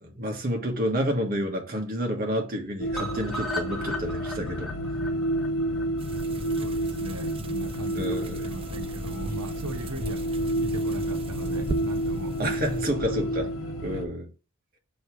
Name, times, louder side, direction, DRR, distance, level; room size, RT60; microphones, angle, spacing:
voice 1, 0.0-4.7 7.9-8.5 12.4-13.5 13.8-14.3, equal, 40° right, 1.5 m, -29 dB
sound 1, 2.8-14.1, right 1 dB, 65° left, 0.9 m, -30 dB
sound 2, 2.9-7.0 7.3-7.4 7.7-7.8 8.1-8.2, left 2 dB, ahead, 1.6 m, -37 dB
sound 3, 6.0-12.9, right 3 dB, 25° right, 0.3 m, -39 dB
voice 2, 6.6-12.3 13.6-14.0, right 2 dB, 90° right, 0.8 m, -39 dB
6.6 x 3.2 x 4.5 m
head